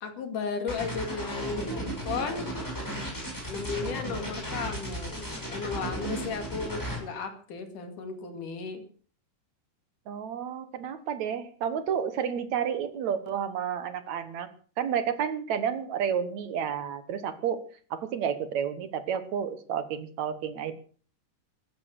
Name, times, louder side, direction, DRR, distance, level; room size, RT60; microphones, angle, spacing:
voice 1, 0.0-2.5 3.5-8.8, left 5 dB, 75° left, 6 dB, 3.9 m, -35 dB
sound 1, 0.7-7.0, right 1 dB, 5° left, 6.8 m, -34 dB
voice 2, 10.1-14.5 14.8-17.6 17.9-20.8, right 8 dB, 65° right, 12 dB, 2.4 m, -31 dB
15.5 x 12.5 x 6.6 m, 0.43 s
omnidirectional pair, 3.7 m